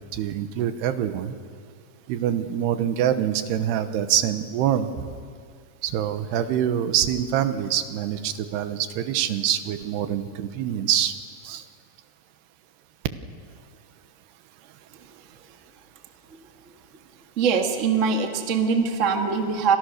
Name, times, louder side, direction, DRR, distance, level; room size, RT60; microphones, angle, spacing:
voice 1, 0.1-1.4 2.1-5.1 5.8-11.1 11.4-11.6, right 10 dB, 80° right, 10 dB, 3.2 m, -25 dB
voice 2, 17.4-19.8, right 5 dB, 45° right, 4 dB, 0.9 m, -22 dB
29.5 x 26.5 x 6.6 m, 2.1 s
omnidirectional pair, 4.7 m